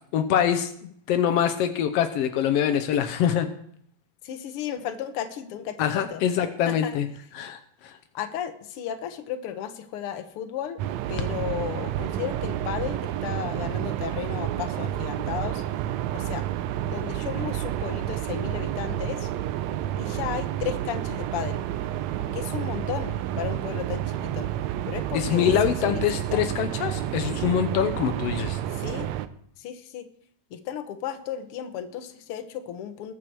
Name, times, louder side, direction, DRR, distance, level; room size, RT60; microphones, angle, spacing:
voice 1, 0.1-3.5 5.8-7.1 7.3-8.0 25.1-28.6, left 9 dB, 90° left, 8 dB, 1.3 m, -24 dB
voice 2, 4.2-6.2 6.6-7.0 8.1-10.8 11.1-15.6 16.1-16.4 16.9-19.3 20.0-21.6 22.3-24.5 24.9-26.0 26.3-26.5 28.7-29.1 29.6-30.1 30.5-33.1, left 9 dB, 70° left, 9 dB, 1.4 m, -34 dB
sound 1, 10.8-29.3, right 12 dB, 80° right, 1.6 m, -30 dB
20.5 x 7.8 x 4.6 m, 0.67 s
omnidirectional pair, 3.8 m